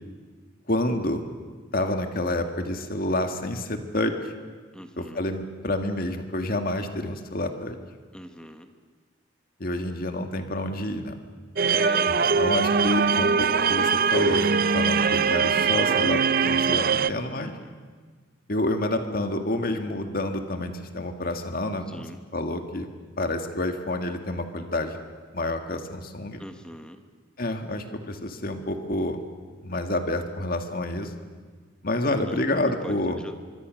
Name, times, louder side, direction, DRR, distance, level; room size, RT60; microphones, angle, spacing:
voice 1, 0.7-1.2 1.7-4.3 5.0-7.8 9.6-11.2 12.1-17.6 18.5-22.0 22.3-22.9 23.2-25.0 25.3-26.4 27.4-29.2 29.6-31.3 31.8-33.2, left 1 dB, 50° left, 6 dB, 1.9 m, -28 dB
voice 2, 4.7-5.2 8.1-8.7 11.7-12.4 16.9-17.7 21.9-22.2 26.4-27.0 32.2-33.3, equal, 5° left, 7 dB, 1.3 m, -40 dB
sound 1, 11.6-17.1, right 5 dB, 50° right, 0.7 m, -22 dB
25.0 x 24.5 x 6.5 m, 1.5 s
head